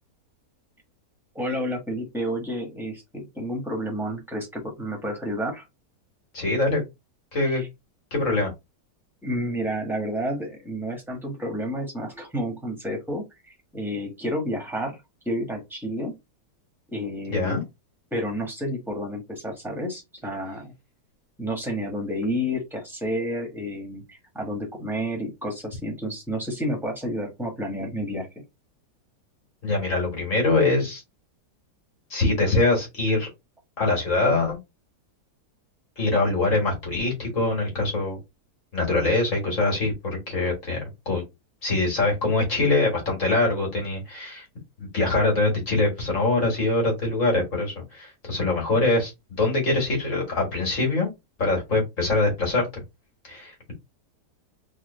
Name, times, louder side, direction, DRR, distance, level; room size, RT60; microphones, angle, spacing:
voice 1, 1.3-5.6 7.5-7.7 9.2-15.0 15.2-16.1 16.9-17.6 18.1-20.7 21.4-28.3, equal, ahead, 1 dB, 1.2 m, -30 dB
voice 2, 6.3-6.8 7.3-7.6 8.1-8.5 17.3-17.6 29.6-31.0 32.1-33.3 33.8-34.6 36.0-38.2 38.7-39.9 40.3-41.2 41.6-44.5 44.9-51.1 51.4-52.8 53.2-53.7, left 2 dB, 50° left, 0 dB, 2.0 m, -23 dB
3.7 x 2.8 x 3.2 m, 0.21 s
omnidirectional pair, 1.8 m